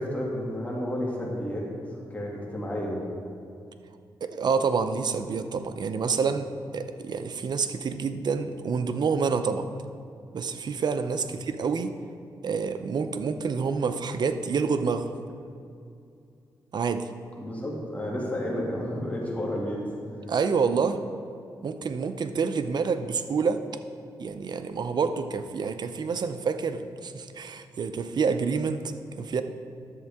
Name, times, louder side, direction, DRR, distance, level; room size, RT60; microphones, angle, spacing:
voice 1, 0.0-1.7 2.1-3.0 17.4-19.8, equal, 20° left, -4 dB, 2.3 m, -31 dB
voice 2, 4.2-9.7 10.3-11.9 12.4-15.1 16.7-17.1 20.3-21.0 21.6-23.6 24.2-29.4, right 5 dB, 60° right, 9 dB, 0.6 m, -28 dB
11.0 x 7.4 x 3.6 m, 2.5 s
cardioid pair, 75°, 8 cm